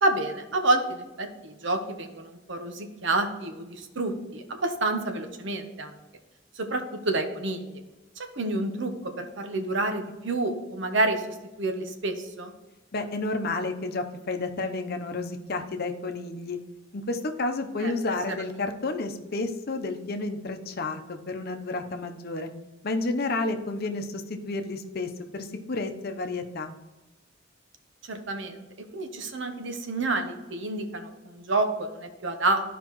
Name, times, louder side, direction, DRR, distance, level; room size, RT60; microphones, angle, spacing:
voice 1, 0.0-6.0 6.6-7.8 8.2-12.5 17.8-17.9 28.0-28.7 28.9-32.6, right 2 dB, 70° right, 6 dB, 1.0 m, -29 dB
voice 2, 12.9-16.6 16.9-22.5 22.8-26.7, left 3 dB, 55° left, 6 dB, 0.8 m, -31 dB
13.0 x 5.0 x 3.1 m, 1.1 s
head